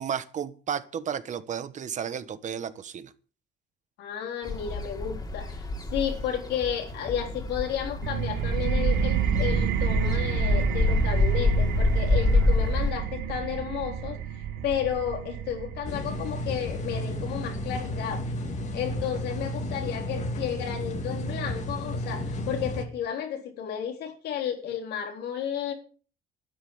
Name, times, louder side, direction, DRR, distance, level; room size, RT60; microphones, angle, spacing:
voice 1, 0.0-3.1, right 8 dB, 45° right, 13 dB, 1.3 m, -33 dB
voice 2, 4.0-5.6 5.9-14.2 14.6-18.3 18.7-25.7, left 9 dB, 75° left, 4 dB, 3.8 m, -32 dB
sound 1, 4.4-12.9, left 3 dB, 25° left, 3.1 m, -27 dB
sound 2, 8.0-19.4, right 9 dB, 80° right, 2.0 m, -30 dB
sound 3, 15.8-22.8, left 1 dB, 45° left, 2.4 m, -33 dB
12.5 x 9.8 x 7.2 m, 0.41 s
cardioid pair, 110°, 17 cm